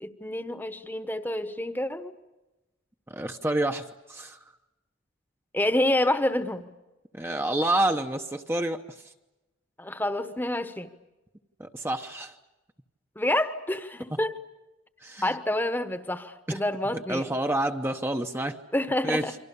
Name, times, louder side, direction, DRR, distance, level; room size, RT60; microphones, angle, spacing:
voice 1, 0.0-2.1 5.5-6.7 9.8-10.9 13.2-14.3 15.2-17.3 18.7-19.4, left 1 dB, 10° left, 10 dB, 1.1 m, -28 dB
voice 2, 3.1-4.4 7.1-8.8 11.6-12.4 14.1-14.2 15.0-15.4 16.5-16.6 17.1-18.6 19.0-19.2, right 1 dB, 10° right, 5 dB, 0.9 m, -28 dB
29.0 x 25.0 x 6.9 m, 1.0 s
head